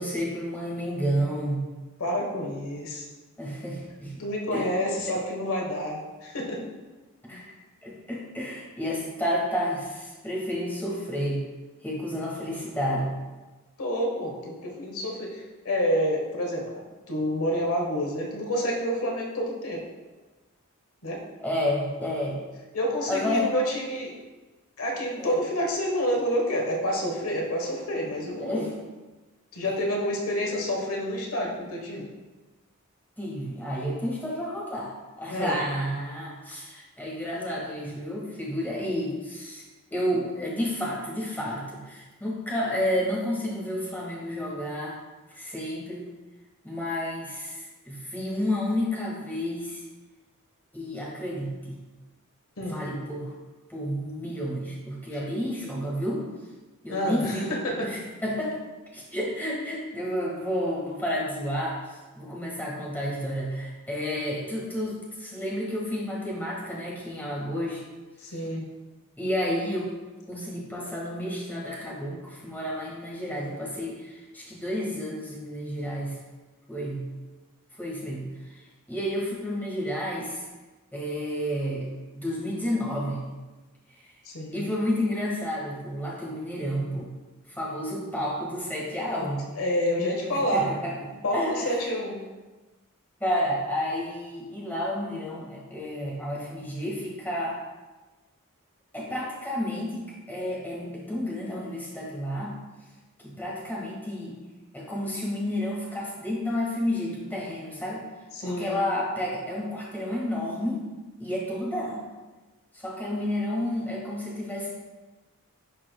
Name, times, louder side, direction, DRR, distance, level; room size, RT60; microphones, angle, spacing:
voice 1, 0.0-1.7 3.4-4.1 4.5-4.7 7.2-7.6 7.8-11.4 11.8-13.1 21.4-22.4 23.1-23.5 25.2-25.4 28.4-28.7 33.2-39.6 39.9-45.0 45.3-46.0 46.6-49.8 50.7-51.8 52.6-53.3 53.7-56.3 56.8-57.5 57.8-58.6 58.9-67.8 68.2-68.4 69.2-69.9 70.3-76.2 76.7-77.1 77.8-78.6 78.9-80.4 80.9-81.9 82.1-83.3 84.0-84.1 84.5-87.2 87.5-89.5 90.3-90.9 91.3-91.8 93.2-97.6 98.9-102.6 103.2-104.4 104.7-108.0 108.4-110.8 111.2-112.0 112.7-114.7, equal, 10° left, -5 dB, 1.6 m, -31 dB
voice 2, 2.0-3.1 4.2-6.7 7.3-7.4 13.8-19.8 21.0-21.2 22.7-24.2 24.8-28.7 29.5-32.1 35.3-35.6 52.6-52.8 56.9-57.9 68.2-68.7 84.2-84.7 89.5-90.7 91.1-92.2 108.3-108.7, equal, 75° left, 0 dB, 1.2 m, -28 dB
10.5 x 4.5 x 2.2 m, 1.2 s
head